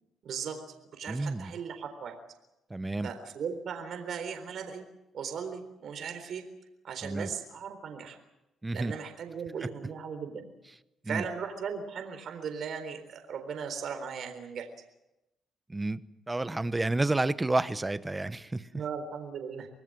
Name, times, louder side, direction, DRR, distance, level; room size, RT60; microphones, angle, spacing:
voice 1, 0.2-0.6 0.9-2.2 3.0-4.8 5.1-6.4 6.8-8.2 8.7-10.5 11.1-14.7 18.7-19.7, right 6 dB, 65° right, 7 dB, 3.9 m, -37 dB
voice 2, 1.1-1.5 2.7-3.1 7.0-7.3 8.6-8.9 11.0-11.2 15.7-16.0 16.3-18.7, right 2 dB, 15° right, 14 dB, 1.1 m, -30 dB
26.0 x 19.5 x 7.8 m, 0.92 s
cardioid pair, 90°, 0 cm